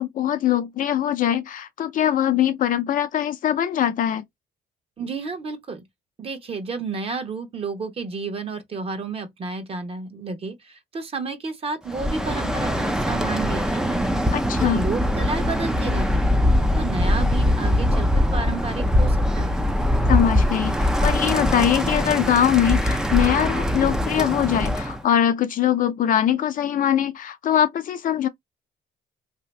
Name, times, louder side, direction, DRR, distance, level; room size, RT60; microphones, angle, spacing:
voice 1, 0.0-4.2 14.3-14.8 20.1-28.3, left 10 dB, 50° left, 0.6 m, -22 dB
voice 2, 5.0-5.8 6.2-14.1 14.6-19.6, right 4 dB, 35° right, 0.9 m, -31 dB
Bird, 11.9-25.0, left 1 dB, 5° right, 0.5 m, -22 dB
2.8 x 2.5 x 3.2 m
cardioid pair, 110°, 17 cm